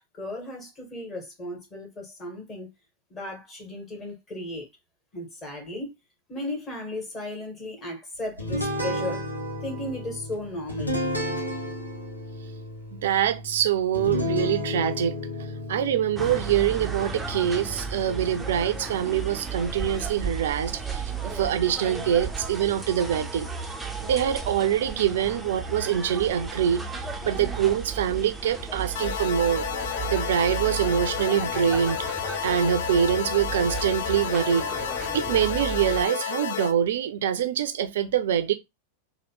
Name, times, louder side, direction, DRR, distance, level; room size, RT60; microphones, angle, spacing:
voice 1, 0.0-2.7 3.1-4.7 5.1-5.9 6.3-9.3 9.6-11.0, left 1 dB, 25° left, 1.6 m, -35 dB
sound 1, 8.4-19.0, left 1 dB, 90° left, 0.9 m, -33 dB
voice 2, 12.9-15.1 15.7-23.5 24.0-26.8 27.2-29.7 30.1-32.0 32.4-34.7 35.1-38.5, right 9 dB, 60° right, 0.4 m, -24 dB
sound 2, 16.2-36.1, right 4 dB, 10° right, 0.6 m, -34 dB
sound 3, 29.0-36.7, left 9 dB, 55° left, 0.3 m, -31 dB
3.2 x 2.4 x 3.0 m
figure-of-eight pair, 90°, 0 cm